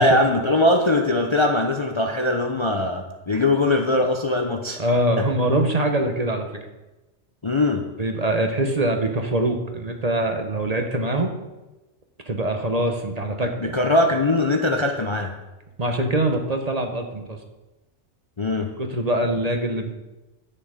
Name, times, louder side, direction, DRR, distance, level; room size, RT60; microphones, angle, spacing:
voice 1, 0.0-4.8 5.2-5.3 7.4-7.9 13.6-15.4 18.4-18.7, left 2 dB, 30° left, 2 dB, 0.6 m, -21 dB
voice 2, 4.8-6.5 8.0-11.3 12.3-13.7 15.8-17.4 18.8-19.9, right 1 dB, 35° right, 4 dB, 0.9 m, -23 dB
9.4 x 6.7 x 5.0 m, 1.1 s
omnidirectional pair, 1.2 m